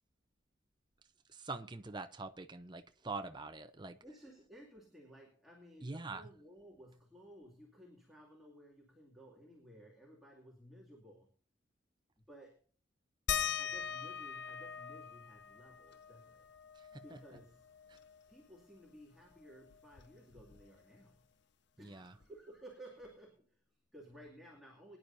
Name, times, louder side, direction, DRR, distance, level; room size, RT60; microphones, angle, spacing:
voice 1, 1.3-4.0 5.8-6.3 21.8-22.1, right 3 dB, 20° right, 0.8 m, -44 dB
voice 2, 4.0-11.3 12.2-12.6 13.6-16.5 16.9-17.7 18.3-21.3 21.8-25.0, equal, ahead, 2.4 m, -56 dB
sound 1, 13.3-18.4 18.8-18.9 19.2-21.0 22.2-22.3 23.0-23.1, left 7 dB, 60° left, 0.7 m, -42 dB
23.0 x 10.5 x 2.7 m
head